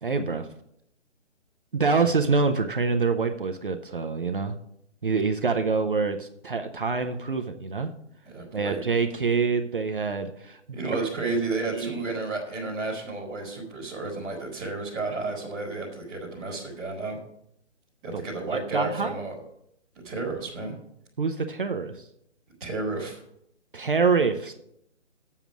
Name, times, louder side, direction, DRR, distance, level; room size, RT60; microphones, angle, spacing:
voice 1, 0.0-0.5 1.7-4.6 5.0-7.9 8.5-11.3 11.7-12.0 18.1-19.2 21.2-22.1 23.7-24.5, right 4 dB, 45° right, 6 dB, 0.6 m, -26 dB
voice 2, 8.2-8.8 10.7-17.2 18.0-19.4 19.9-20.7 22.6-23.2, right 3 dB, 5° right, -12 dB, 0.9 m, -32 dB
7.9 x 7.3 x 6.0 m, 0.74 s
hypercardioid pair, 175°, 36 cm